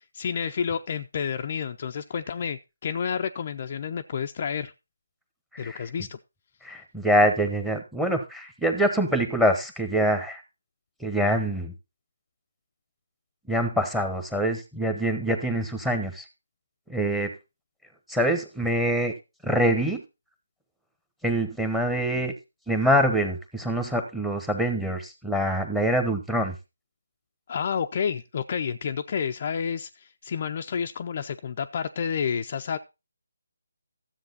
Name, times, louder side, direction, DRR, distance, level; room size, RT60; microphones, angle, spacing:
voice 1, 0.0-4.7 5.6-6.2 27.5-32.8, left 7 dB, 35° left, 6 dB, 0.5 m, -30 dB
voice 2, 5.5-5.8 6.6-10.4 11.0-11.7 13.5-16.2 16.9-17.3 18.1-19.1 19.4-20.0 21.2-22.3 22.7-26.5, equal, ahead, 8 dB, 1.1 m, -25 dB
13.0 x 7.7 x 4.0 m, 0.27 s
figure-of-eight pair, 165°, 0 cm